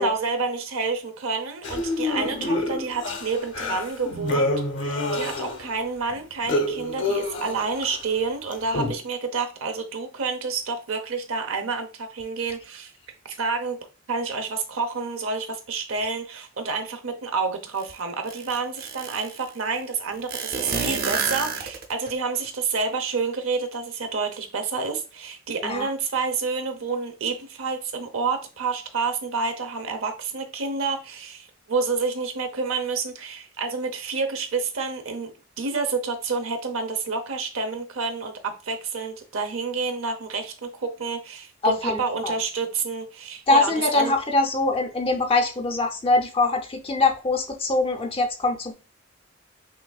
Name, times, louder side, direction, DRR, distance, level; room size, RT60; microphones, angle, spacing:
voice 1, 0.0-12.9 13.2-13.8 14.1-35.3 35.6-44.1, right 4 dB, 90° right, 0.7 m, -29 dB
sound 1, 1.6-5.8 6.1-8.0 8.5-8.9, left 2 dB, 60° left, 0.7 m, -27 dB
sound 2, 17.8-17.9 18.3-19.4 20.3-22.1, right 5 dB, 50° right, 0.6 m, -29 dB
voice 2, 41.6-42.4 43.5-48.7, left 3 dB, 25° left, 0.5 m, -23 dB
5.9 x 2.6 x 2.3 m
head